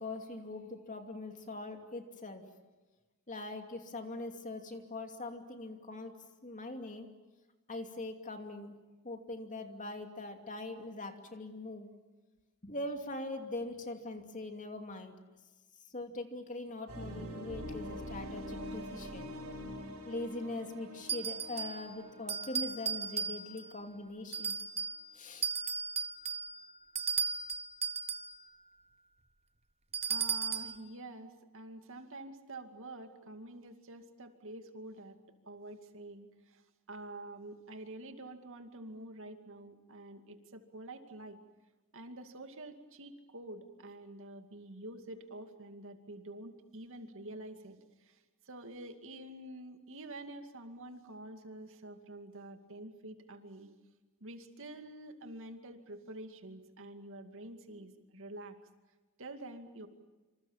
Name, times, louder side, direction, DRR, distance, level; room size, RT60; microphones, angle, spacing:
voice 1, 0.0-2.4 3.3-6.2 6.4-7.1 7.7-8.8 9.0-11.9 12.6-15.2 15.9-19.3 20.0-24.6 25.1-25.4, left 2 dB, 35° left, 5 dB, 2.7 m, -42 dB
sound 1, 16.9-23.7, equal, 90° right, 7.5 m, -45 dB
sound 2, 21.1-21.8 22.3-23.7 24.3-25.0 25.4-28.4 29.9-30.8, right 6 dB, 30° right, 1.1 m, -35 dB
voice 2, 30.1-36.6 36.9-41.4 41.9-53.7 54.2-58.6 59.2-59.9, right 1 dB, 60° right, 6 dB, 2.4 m, -48 dB
27.0 x 27.0 x 7.4 m, 1.2 s
head